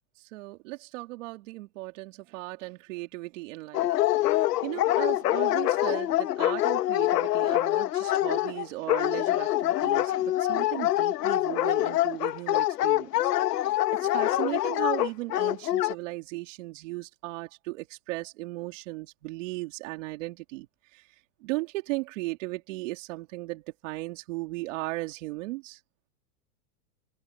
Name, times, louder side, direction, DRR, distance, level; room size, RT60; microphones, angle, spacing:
voice 1, 0.3-3.9 4.2-13.1 14.0-20.7 20.9-21.0 21.4-25.8, right 21 dB, 50° right, 2.7 m, -36 dB
Dog, 3.7-15.9, left 14 dB, 80° left, 1.6 m, -25 dB
open air
supercardioid pair, 160°, 47 cm